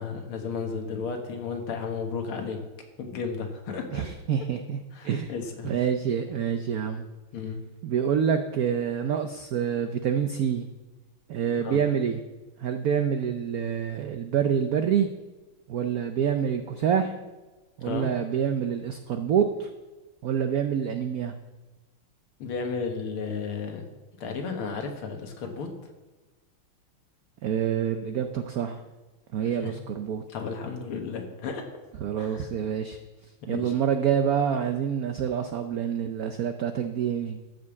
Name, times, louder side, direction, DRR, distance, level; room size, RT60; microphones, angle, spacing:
voice 1, 0.0-2.6 3.0-4.0 4.9-5.8 7.3-7.6 11.6-11.8 17.8-18.1 22.4-23.9 24.2-25.7 29.6-29.7 30.3-31.6 32.2-32.5 33.5-33.7, left 5 dB, 85° left, 4 dB, 2.2 m, -33 dB
voice 2, 3.9-5.3 5.6-7.0 7.8-10.7 11.3-12.2 12.6-15.1 15.7-17.1 17.8-19.7 20.2-21.3 27.4-28.8 29.3-30.2 32.0-33.0 33.5-37.4, right 8 dB, 75° right, 7 dB, 0.8 m, -27 dB
13.0 x 5.3 x 7.2 m, 1.2 s
omnidirectional pair, 2.3 m